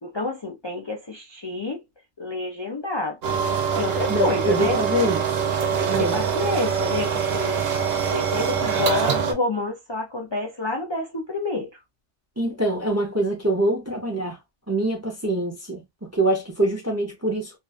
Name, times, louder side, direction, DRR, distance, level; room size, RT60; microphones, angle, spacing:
voice 1, 0.0-1.8 2.2-3.4 3.7-4.8 5.6-7.6 8.1-11.8, left 3 dB, 40° left, 0.4 m, -28 dB
sound 1, 3.2-9.3, right 7 dB, 60° right, 0.9 m, -24 dB
voice 2, 4.1-5.2 5.9-6.2 12.4-14.4 14.7-17.5, right 1 dB, 20° right, 0.4 m, -24 dB
2.5 x 2.2 x 2.3 m
omnidirectional pair, 1.2 m